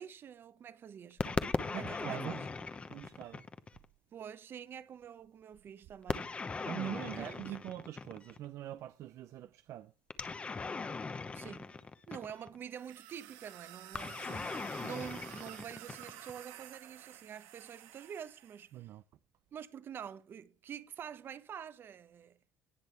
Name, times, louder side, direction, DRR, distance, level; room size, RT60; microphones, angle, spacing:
voice 1, 0.0-2.4 4.1-6.7 7.1-7.6 11.3-11.7 12.0-18.9 19.5-22.4, right 8 dB, 40° right, 1.0 m, -47 dB
sound 1, 1.2-3.9 6.1-8.5 10.1-12.6 13.9-16.4, left 4 dB, 20° left, 1.0 m, -39 dB
voice 2, 1.5-2.5 2.9-3.5 6.6-9.9 18.7-19.0, right 12 dB, 60° right, 0.6 m, -43 dB
sound 2, 12.7-18.7, right 13 dB, 85° right, 1.7 m, -52 dB
18.5 x 6.3 x 3.4 m
cardioid pair, 130°, 6 cm